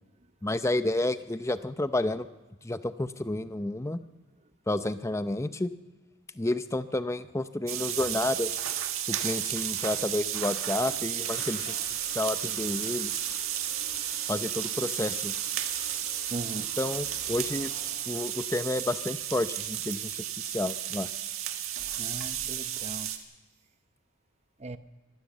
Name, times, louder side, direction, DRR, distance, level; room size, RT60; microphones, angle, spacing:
voice 1, 0.4-2.3 2.6-4.0 4.7-5.7 6.4-8.6 9.1-11.8 12.1-13.2 14.3-15.3 16.8-17.7 18.1-21.1, left 1 dB, 15° left, 12 dB, 0.6 m, -30 dB
sound 1, 7.7-23.2, right 11 dB, 75° right, 1.7 m, -33 dB
Toilet flush, 10.6-23.0, left 3 dB, 85° left, 6.9 m, -50 dB
voice 2, 16.3-16.7 22.0-23.1 24.6-24.8, right 2 dB, 30° right, 11 dB, 0.8 m, -38 dB
24.0 x 15.0 x 7.4 m, 1.2 s
head